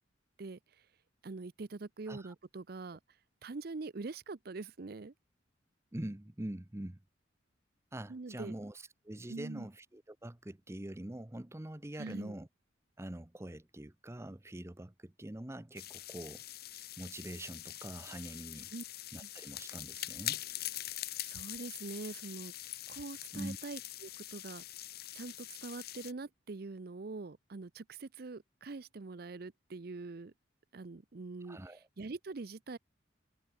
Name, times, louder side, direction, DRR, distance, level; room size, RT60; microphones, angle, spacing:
voice 1, 0.4-0.9 1.2-3.0 3.4-5.1 8.1-8.5 9.3-9.7 11.9-12.4 18.7-18.8 19.2-19.3 21.2-22.5 22.9-24.6 25.1-30.3 30.7-32.8, right 3 dB, 55° right, 0.6 m, -44 dB
voice 2, 5.9-7.0 7.9-12.5 13.0-16.4 17.0-18.7 19.1-20.4 23.3-23.6 31.4-31.8, right 1 dB, 15° right, 0.7 m, -44 dB
sound 1, 15.8-26.1, left 14 dB, 55° left, 1.8 m, -43 dB
head